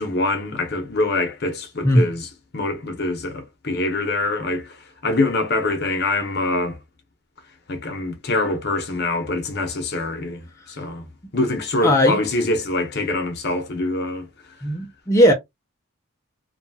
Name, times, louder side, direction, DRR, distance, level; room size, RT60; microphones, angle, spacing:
voice 1, 0.0-6.8 7.7-11.0 11.3-14.3, left 2 dB, 50° left, 0.8 m, -24 dB
voice 2, 11.8-12.2 14.6-15.3, equal, 15° left, 0.5 m, -16 dB
2.7 x 2.3 x 2.7 m
head